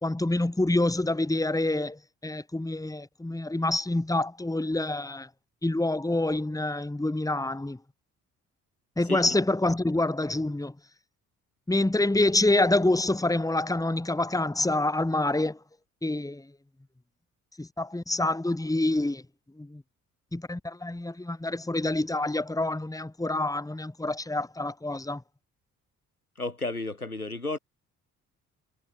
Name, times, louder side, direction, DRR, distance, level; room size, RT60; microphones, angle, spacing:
voice 1, 0.0-5.3 5.6-7.8 9.0-10.7 11.7-15.6 16.0-16.5 17.6-19.2 19.6-19.8 20.3-25.2, left 2 dB, 10° left, 2.7 m, -27 dB
voice 2, 26.4-27.6, left 2 dB, 90° left, 6.6 m, -32 dB
figure-of-eight pair, 45°, 43 cm